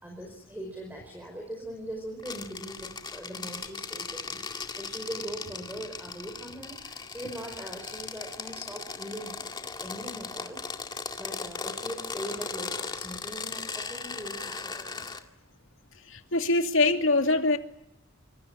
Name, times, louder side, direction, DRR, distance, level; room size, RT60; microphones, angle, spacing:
voice 1, 0.0-9.4 9.6-10.6 11.2-15.1, equal, 10° right, 2 dB, 5.2 m, -41 dB
sound 1, 2.2-15.2, left 4 dB, 20° left, 2.1 m, -38 dB
voice 2, 16.1-17.6, left 2 dB, 65° left, 6 dB, 2.7 m, -23 dB
26.0 x 26.0 x 8.7 m, 0.81 s
head